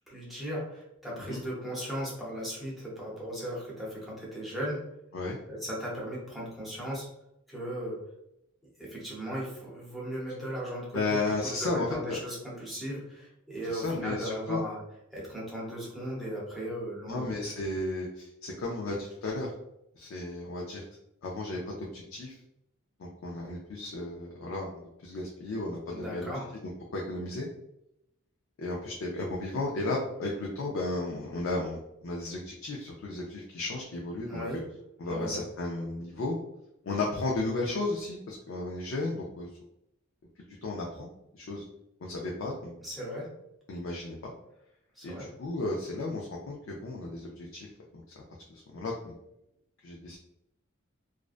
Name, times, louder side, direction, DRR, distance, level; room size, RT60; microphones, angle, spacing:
voice 1, 0.1-4.8 5.5-7.0 7.5-8.0 8.8-11.2 11.6-14.8 15.1-17.4 25.9-26.5 34.3-34.6 35.1-35.4 42.8-43.3 45.0-45.3, equal, ahead, -6 dB, 0.7 m, -37 dB
voice 2, 10.9-12.2 13.7-14.6 17.1-19.5 20.0-20.8 21.2-22.3 23.0-26.3 26.9-27.5 28.6-34.6 35.0-36.4 36.8-39.5 40.6-41.6 42.0-42.8 43.7-44.3 45.0-47.7 47.9-48.2 48.5-49.1 49.8-50.2, left 2 dB, 70° left, -2 dB, 0.4 m, -34 dB
2.4 x 2.1 x 2.4 m, 0.83 s
head